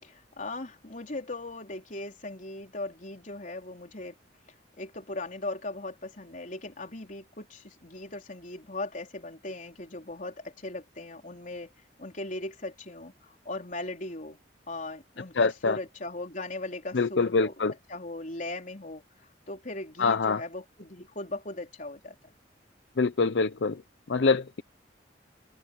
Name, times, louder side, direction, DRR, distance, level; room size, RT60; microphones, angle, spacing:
voice 1, 0.0-4.2 4.8-11.7 12.0-14.4 14.7-17.6 17.9-22.2, left 2 dB, 45° left, 4.2 m, -38 dB
voice 2, 15.4-15.8 16.9-17.7 20.0-20.4 23.0-23.8 24.1-24.6, left 4 dB, 75° left, 0.6 m, -25 dB
head